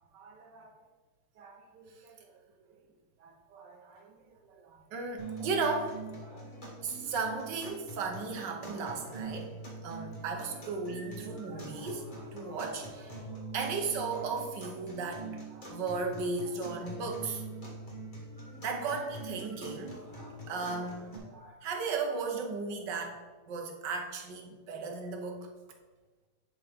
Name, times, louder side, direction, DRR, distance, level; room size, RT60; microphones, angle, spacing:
voice 1, 0.1-0.7 1.4-2.2 3.2-4.2 4.5-6.0 6.8-13.2 13.5-17.4 18.6-20.0 20.5-25.5, right 4 dB, 60° right, 3 dB, 1.3 m, -36 dB
sound 1, 5.2-21.2, right 2 dB, 25° left, 1.3 m, -44 dB
10.5 x 3.8 x 3.5 m, 1.3 s
omnidirectional pair, 2.4 m